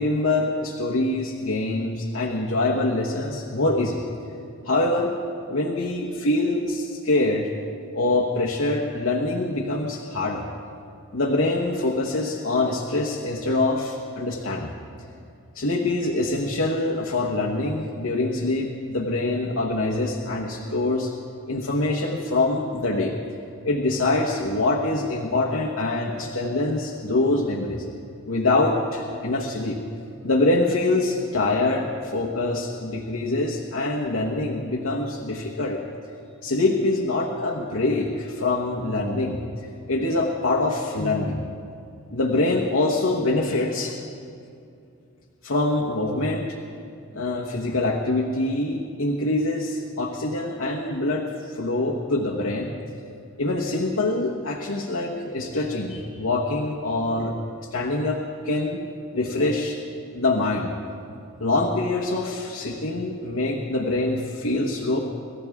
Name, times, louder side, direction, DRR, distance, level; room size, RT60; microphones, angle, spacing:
voice 1, 0.0-4.1 4.6-5.1 5.5-7.5 7.9-10.4 11.1-14.7 15.5-21.1 21.5-23.1 23.6-27.9 28.3-29.8 30.2-35.8 36.4-39.4 39.9-41.5 42.1-44.0 45.4-46.6 47.1-52.7 53.4-57.3 57.7-58.8 59.1-59.8 60.1-60.7 61.4-65.0, left 2 dB, 80° left, -2 dB, 1.2 m, -24 dB
27.0 x 14.0 x 3.6 m, 2.5 s
head